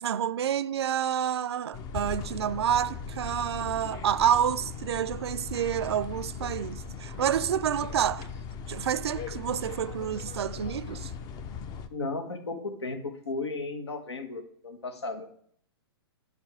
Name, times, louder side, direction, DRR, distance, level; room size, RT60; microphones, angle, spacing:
voice 1, 0.0-8.3 8.7-11.1, right 9 dB, 75° right, 0.4 m, -28 dB
sound 1, 1.7-11.9, left 6 dB, 30° left, 0.6 m, -39 dB
voice 2, 11.9-15.3, left 3 dB, 85° left, 1.5 m, -35 dB
10.0 x 5.3 x 3.4 m
hypercardioid pair, 125°, 14 cm